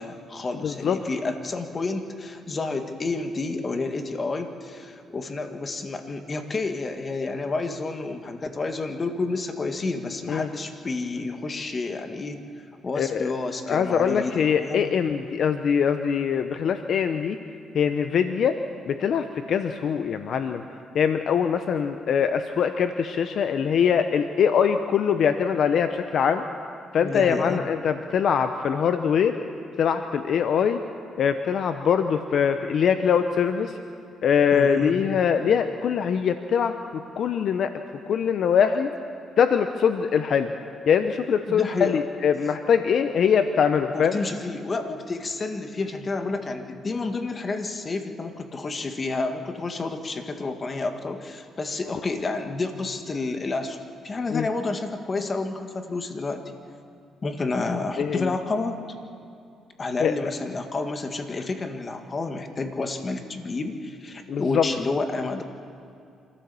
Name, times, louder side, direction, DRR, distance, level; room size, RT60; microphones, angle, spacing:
voice 1, 0.0-12.4 12.8-14.9 27.0-27.6 34.5-34.9 41.5-42.0 43.9-53.8 54.0-56.4 57.2-58.8 59.8-65.4, left 3 dB, 35° left, 6 dB, 1.7 m, -30 dB
voice 2, 0.6-1.0 10.3-10.5 12.9-13.3 13.7-17.4 17.7-18.6 18.9-20.6 20.9-26.4 26.9-29.4 29.8-30.8 31.2-33.8 34.2-37.7 38.1-38.9 39.4-40.5 40.9-44.2 54.3-54.5 58.0-58.3 60.0-60.3 64.3-64.7, left 7 dB, 65° left, 8 dB, 0.8 m, -23 dB
26.0 x 14.5 x 7.0 m, 2.5 s
cardioid pair, 90°, 0 cm